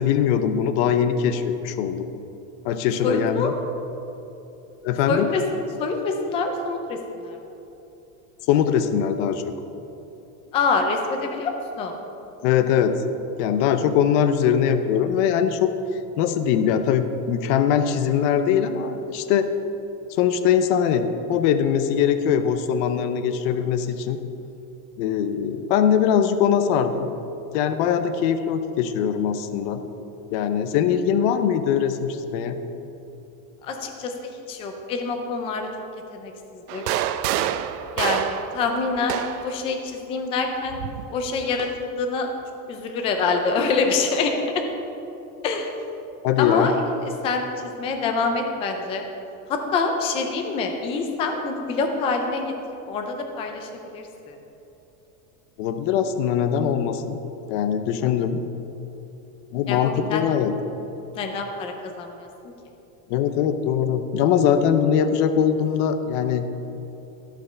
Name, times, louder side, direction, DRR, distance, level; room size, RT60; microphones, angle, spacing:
voice 1, 0.0-2.1 2.6-3.5 4.8-5.3 8.5-9.4 12.4-12.9 13.4-15.7 16.2-19.4 20.1-24.2 25.0-27.1 27.5-29.8 30.3-32.6 46.2-46.7 55.6-57.2 57.5-58.4 59.5-60.5 63.1-66.5, left 8 dB, 50° left, 9 dB, 0.7 m, -21 dB
voice 2, 3.0-3.5 5.1-5.4 5.8-7.4 10.5-12.0 33.6-34.1 34.5-35.7 36.1-37.0 38.0-40.8 41.1-42.3 42.7-44.6 45.4-45.7 46.4-46.7 47.0-47.5 47.8-49.0 49.5-52.5 52.9-54.4 59.7-60.3 61.1-62.5, left 4 dB, 15° left, 4 dB, 0.3 m, -26 dB
sound 1, 36.7-39.6 40.7-41.8, right 11 dB, 80° right, 0.7 m, -27 dB
14.0 x 5.1 x 6.7 m, 2.9 s
supercardioid pair, 165°, 44 cm